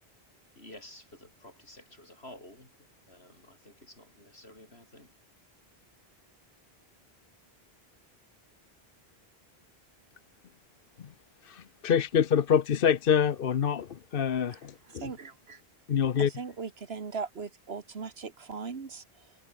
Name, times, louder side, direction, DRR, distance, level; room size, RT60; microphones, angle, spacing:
voice 1, 0.6-5.1, left 1 dB, 85° left, 8.5 m, -51 dB
voice 2, 11.4-14.7 15.9-16.3, left 8 dB, 60° left, 1.0 m, -25 dB
voice 3, 14.9-15.6 16.2-19.3, right 5 dB, 75° right, 1.9 m, -39 dB
omnidirectional pair, 1.0 m